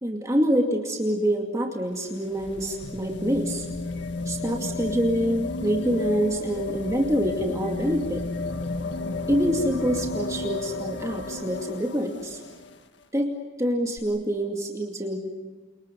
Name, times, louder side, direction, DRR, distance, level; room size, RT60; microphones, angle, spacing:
voice 1, 0.0-3.7 4.3-8.2 9.3-12.4 13.1-15.2, equal, 15° right, 1 dB, 2.4 m, -26 dB
sound 1, 1.8-12.8 14.0-14.1, left 2 dB, 65° left, 1.8 m, -33 dB
29.5 x 29.5 x 5.3 m, 1.3 s
head